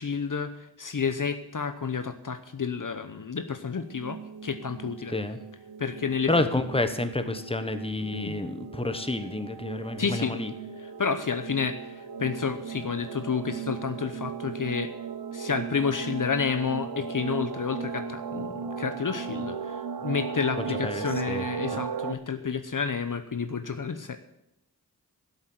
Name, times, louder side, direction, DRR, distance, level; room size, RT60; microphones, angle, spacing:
voice 1, 0.0-5.1 5.8-6.3 6.8-6.9 8.1-8.4 10.0-10.4 10.8-14.9 15.3-24.2, left 6 dB, 55° left, 9 dB, 0.9 m, -30 dB
sound 1, 3.8-22.1, right 6 dB, 70° right, 0.9 m, -37 dB
voice 2, 6.3-10.5 20.8-21.4 21.7-21.8, left 2 dB, 15° left, 9 dB, 1.2 m, -29 dB
12.5 x 8.1 x 7.8 m, 0.82 s
wide cardioid pair, 55°, 39 cm